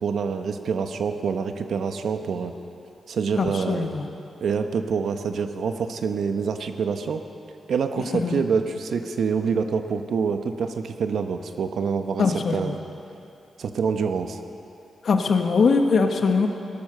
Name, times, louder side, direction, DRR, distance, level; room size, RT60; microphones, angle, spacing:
voice 1, 0.0-2.5 3.1-3.9 4.4-7.2 7.7-12.2 12.5-12.8 13.6-14.4, right 6 dB, 75° right, 7 dB, 0.9 m, -26 dB
voice 2, 3.4-4.0 8.0-8.4 12.2-12.7 15.0-16.5, left 4 dB, 60° left, 5 dB, 1.3 m, -21 dB
18.0 x 12.0 x 6.7 m, 2.7 s
wide cardioid pair, 115°, 0 cm